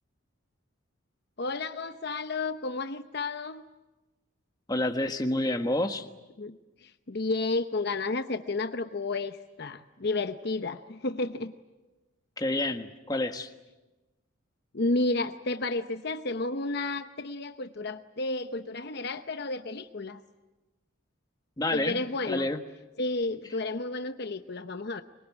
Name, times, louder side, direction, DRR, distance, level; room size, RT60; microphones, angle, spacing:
voice 1, 1.4-3.6 6.4-11.5 14.7-20.2 21.7-22.5 23.0-25.0, left 2 dB, 50° left, 9 dB, 0.8 m, -32 dB
voice 2, 4.7-6.1 12.4-13.5 21.6-22.6, left 1 dB, 20° left, 6 dB, 1.4 m, -29 dB
25.0 x 22.0 x 9.9 m, 1.1 s
head